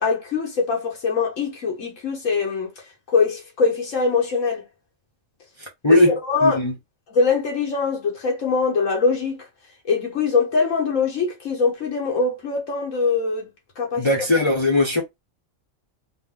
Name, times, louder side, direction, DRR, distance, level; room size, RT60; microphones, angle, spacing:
voice 1, 0.0-2.7 3.1-4.6 5.9-6.6 7.1-9.5 9.8-13.5 13.8-14.1, left 4 dB, 90° left, 1.6 m, -22 dB
voice 2, 5.8-6.2 6.4-6.7 14.0-15.0, left 2 dB, 25° left, 0.9 m, -18 dB
3.8 x 2.6 x 3.7 m
omnidirectional pair, 1.3 m